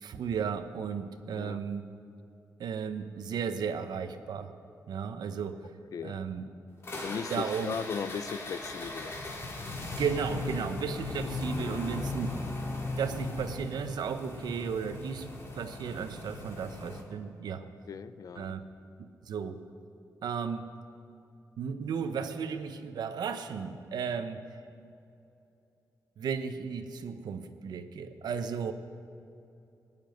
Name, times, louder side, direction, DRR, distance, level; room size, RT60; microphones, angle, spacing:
voice 1, 0.0-1.9 2.6-4.5 4.9-5.6 6.0-6.4 7.3-7.7 9.9-12.4 13.0-15.3 15.5-17.6 18.4-18.6 19.3-19.6 20.2-20.7 21.6-24.4 26.2-28.7, right 6 dB, 80° right, 9 dB, 1.0 m, -34 dB
voice 2, 1.3-1.6 5.9-6.2 7.0-9.1 17.9-18.5, left 6 dB, 60° left, 14 dB, 0.6 m, -37 dB
sound 1, 6.8-17.0, left 2 dB, 35° left, 2.8 m, -38 dB
20.0 x 7.2 x 9.2 m, 2.7 s
cardioid pair, 110°, 7 cm